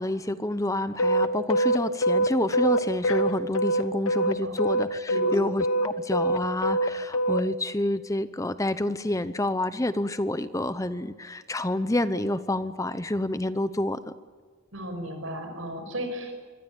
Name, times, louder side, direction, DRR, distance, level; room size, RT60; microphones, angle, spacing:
voice 1, 0.0-14.1, left 1 dB, 15° left, 13 dB, 0.8 m, -28 dB
sound 1, 1.0-4.3 4.6-7.4, right 1 dB, 85° left, 1.2 m, -23 dB
voice 2, 14.7-16.4, equal, 80° right, 6 dB, 6.1 m, -34 dB
26.0 x 23.5 x 8.9 m, 1.5 s
head